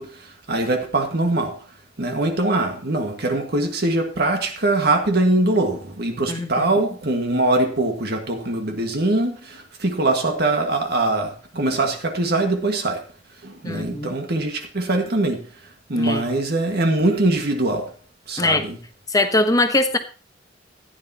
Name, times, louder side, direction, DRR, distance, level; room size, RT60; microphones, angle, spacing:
voice 1, 0.0-1.6 2.0-13.0 13.4-15.5 15.9-17.9 18.3-18.8, right 2 dB, 60° right, 1.8 m, -22 dB
voice 2, 6.3-6.8 13.6-14.1 15.9-16.2 18.4-18.6 19.1-20.0, left 2 dB, 20° left, 1.0 m, -21 dB
15.0 x 9.7 x 2.9 m
head